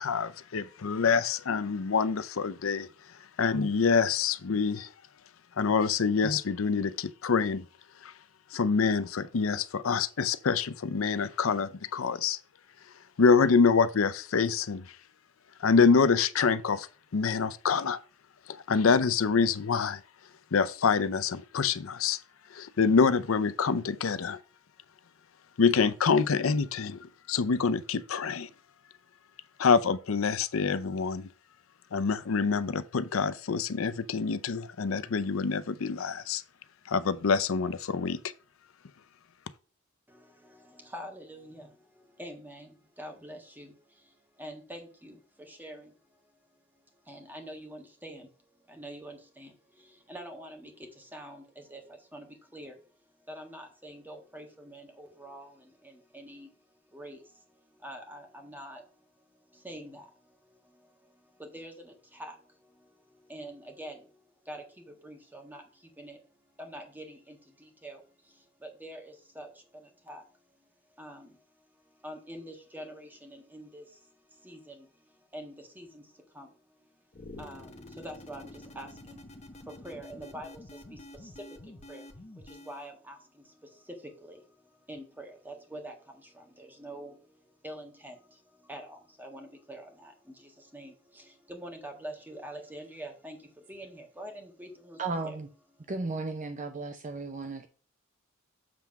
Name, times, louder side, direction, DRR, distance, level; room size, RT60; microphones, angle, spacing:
voice 1, 0.0-2.9 3.4-4.9 5.6-7.6 8.0-8.1 8.5-12.4 13.2-14.9 15.6-16.9 17.1-18.0 18.5-20.0 20.5-22.2 22.5-24.4 25.6-28.5 29.6-31.3 31.9-36.4 36.9-38.2, left 5 dB, 80° left, 0.6 m, -26 dB
voice 2, 40.1-56.6 56.8-64.2 64.4-70.6 70.9-76.9 77.4-95.4 95.8-95.9, right 1 dB, 10° right, 1.5 m, -46 dB
sound 1, 77.1-82.9, left 1 dB, 35° left, 1.0 m, -48 dB
voice 3, 95.0-95.5 95.9-97.7, right 3 dB, 40° right, 0.6 m, -34 dB
7.6 x 3.6 x 5.8 m
head